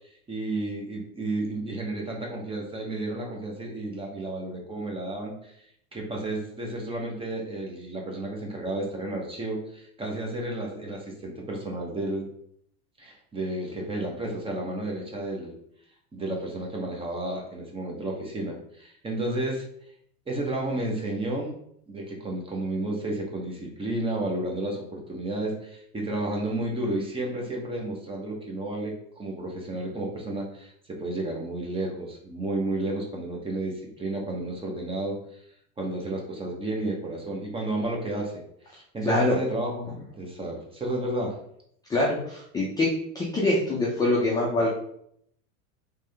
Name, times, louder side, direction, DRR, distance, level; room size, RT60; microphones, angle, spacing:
voice 1, 0.3-5.6 5.9-12.3 13.0-15.5 16.1-19.6 20.3-21.6 21.9-35.4 35.8-38.3 38.9-39.9 40.2-41.4, right 1 dB, 10° right, 0 dB, 0.8 m, -32 dB
voice 2, 39.0-39.3 41.9-42.9 43.1-44.7, left 2 dB, 10° left, -4 dB, 0.4 m, -24 dB
3.6 x 3.3 x 3.3 m, 0.70 s
supercardioid pair, 130°, 43 cm